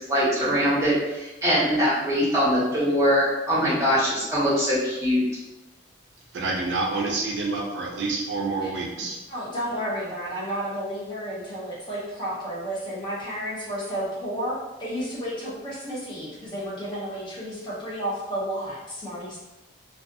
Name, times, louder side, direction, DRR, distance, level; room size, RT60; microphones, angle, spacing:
voice 1, 0.1-5.2, equal, 15° right, -8 dB, 0.9 m, -22 dB
voice 2, 6.3-9.2, right 3 dB, 60° right, -1 dB, 0.4 m, -28 dB
voice 3, 9.3-19.4, equal, 25° left, -7 dB, 0.6 m, -32 dB
2.4 x 2.2 x 2.6 m, 1.0 s
head